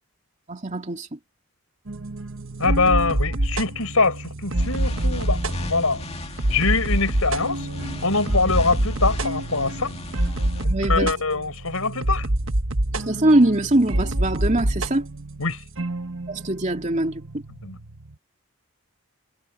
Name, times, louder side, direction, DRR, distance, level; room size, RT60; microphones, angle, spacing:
voice 1, 0.5-1.2 10.7-11.1 12.9-15.1 16.3-17.4, right 1 dB, 35° right, 2.7 m, -22 dB
sound 1, 1.9-18.1, right 1 dB, 65° right, 1.5 m, -27 dB
voice 2, 2.6-6.1 6.5-7.7 8.0-9.9 10.6-12.3 15.4-15.6 17.6-17.8, left 3 dB, 85° left, 5.3 m, -23 dB
sound 2, 4.6-10.6, left 1 dB, 30° left, 2.4 m, -35 dB
head